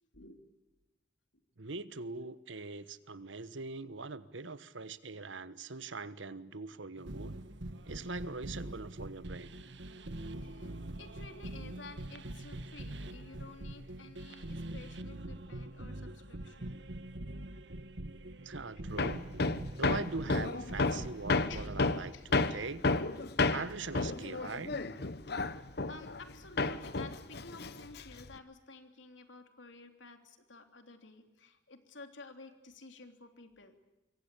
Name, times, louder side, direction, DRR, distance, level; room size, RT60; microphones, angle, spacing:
voice 1, 1.6-7.3 7.9-9.5 18.4-19.3 19.8-22.8 23.5-24.7, right 3 dB, 85° right, 14 dB, 1.3 m, -42 dB
sound 1, 7.0-22.1, right 1 dB, 70° right, 1.6 m, -44 dB
voice 2, 10.4-16.8 21.5-21.7 22.1-22.3 25.3-33.8, left 3 dB, 80° left, 6 dB, 3.3 m, -52 dB
Hammer, 19.0-26.3 26.6-28.3, left 3 dB, 60° left, 1.1 m, -32 dB
26.0 x 23.0 x 8.5 m, 1.0 s
head